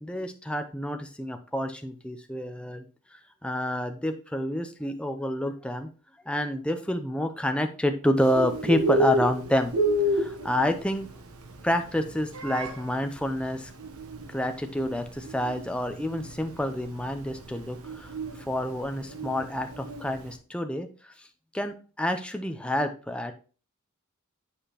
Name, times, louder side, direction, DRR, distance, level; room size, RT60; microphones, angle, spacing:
voice 1, 0.0-2.9 3.4-5.9 6.3-9.7 10.1-11.1 11.6-13.7 14.3-18.1 18.5-21.1 21.5-23.3, left 1 dB, 5° left, 6 dB, 0.6 m, -28 dB
Bird, 8.2-20.3, equal, 90° right, 1.0 m, -31 dB
8.7 x 5.0 x 2.9 m, 0.36 s
head